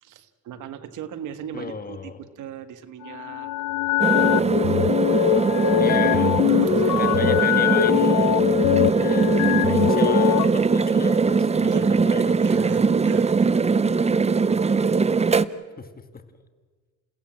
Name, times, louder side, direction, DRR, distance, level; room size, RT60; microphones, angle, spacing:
voice 1, 0.0-3.5 5.8-6.0 6.5-7.5 11.6-12.0 12.4-13.7 14.2-14.3, right 9 dB, 85° right, 11 dB, 1.6 m, -38 dB
voice 2, 1.5-2.2 5.7-6.3 7.0-8.5 9.0-12.4 13.8-14.0 15.8-16.2, left 4 dB, 30° left, 9 dB, 2.1 m, -34 dB
sound 1, 3.0-10.5, left 17 dB, 85° left, 0.6 m, -22 dB
sound 2, 4.0-15.4, right 4 dB, 20° right, 0.7 m, -21 dB
29.5 x 16.5 x 7.4 m, 1.5 s
cardioid pair, 90°, 30 cm